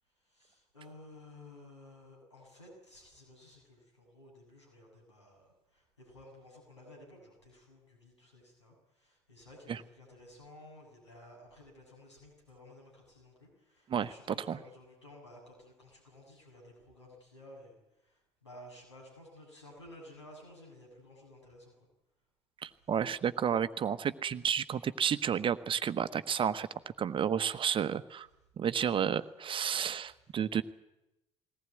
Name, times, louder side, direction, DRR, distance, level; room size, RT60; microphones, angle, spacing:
voice 1, 0.3-17.8 18.0-21.7, left 1 dB, 85° left, -2 dB, 7.4 m, -54 dB
voice 2, 13.9-14.6 22.6-26.7 27.0-28.3 28.6-30.6, right 8 dB, 35° right, 13 dB, 1.1 m, -31 dB
21.0 x 18.5 x 9.3 m, 0.94 s
figure-of-eight pair, 55°, 14 cm